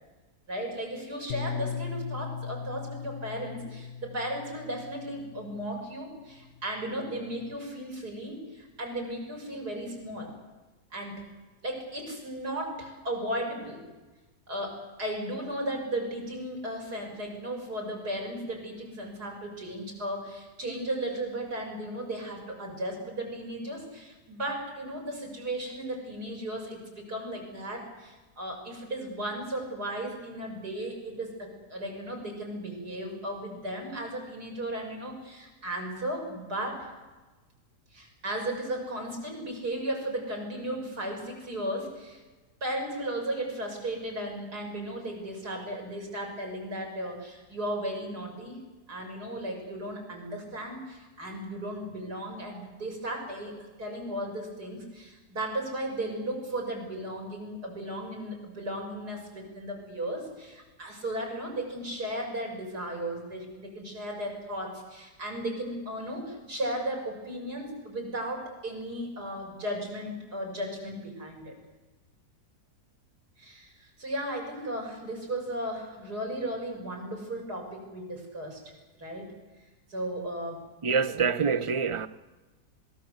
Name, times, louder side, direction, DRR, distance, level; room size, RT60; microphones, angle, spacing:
voice 1, 0.5-10.3 10.9-11.2 11.6-13.8 14.5-36.9 37.9-42.2 42.6-48.6 48.9-71.5 73.4-78.6 79.0-79.3 79.9-80.6, right 1 dB, 75° right, 7.2 m, -35 dB
Bass guitar, 1.3-5.8 6.6-7.5, left 6 dB, 40° left, 1.0 m, -38 dB
voice 2, 80.8-82.1, right 6 dB, 35° right, 0.5 m, -26 dB
26.0 x 21.5 x 8.0 m
omnidirectional pair, 1.7 m